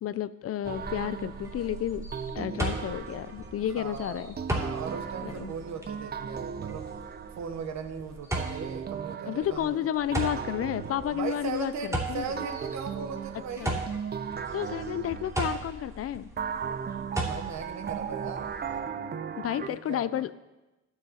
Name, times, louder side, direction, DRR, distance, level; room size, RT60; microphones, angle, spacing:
voice 1, 0.0-2.1 2.3-4.4 5.2-5.6 9.3-11.7 12.1-12.4 13.6-13.8 14.5-16.3 19.4-20.3, left 11 dB, 50° left, 16 dB, 0.4 m, -31 dB
sound 1, 0.6-18.8, right 1 dB, 10° right, 2.7 m, -38 dB
sound 2, 0.6-3.7 4.4-7.9 8.4-11.9 12.4-15.8 16.4-19.7, right 7 dB, 35° right, 0.6 m, -37 dB
voice 2, 3.6-6.9 7.4-9.8 11.1-13.8 17.1-18.5 19.6-20.2, right 6 dB, 65° right, 6 dB, 1.3 m, -38 dB
11.0 x 7.0 x 4.3 m, 1.1 s
cardioid pair, 90°, 30 cm